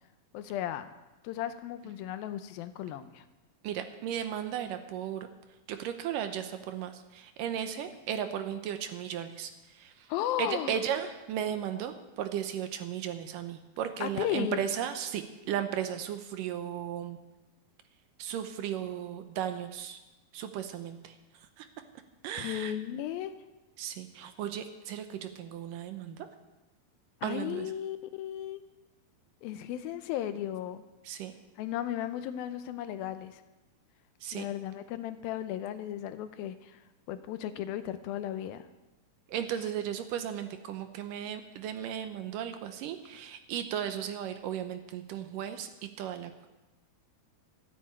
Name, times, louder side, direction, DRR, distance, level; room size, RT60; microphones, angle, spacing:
voice 1, 0.3-0.9 1.2-3.2 10.1-10.8 14.0-14.6 22.3-23.3 27.2-28.6 29.4-30.8 31.6-33.4 34.3-36.8 37.1-38.7, left 11 dB, 85° left, 11 dB, 2.5 m, -35 dB
voice 2, 3.6-5.3 5.7-9.9 10.4-17.2 18.2-20.0 20.3-21.2 21.6-21.7 22.2-22.7 23.8-26.2 27.2-27.7 31.0-31.3 34.2-34.5 39.3-45.7 46.0-46.5, right 9 dB, 75° right, 8 dB, 2.3 m, -35 dB
13.0 x 8.5 x 8.8 m, 1.1 s
omnidirectional pair, 4.2 m